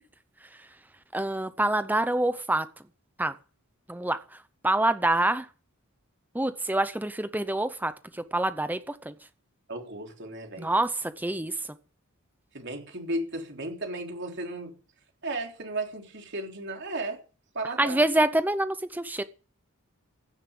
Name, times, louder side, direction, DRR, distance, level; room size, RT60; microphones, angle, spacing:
voice 1, 1.1-2.7 3.2-3.3 3.9-4.2 4.6-5.5 6.3-9.1 10.6-11.5 17.8-19.2, right 1 dB, 10° right, 0.7 m, -26 dB
voice 2, 9.7-10.7 12.5-14.7 15.2-17.2 17.5-18.0, right 2 dB, 55° right, 3.6 m, -34 dB
16.0 x 7.4 x 9.4 m
head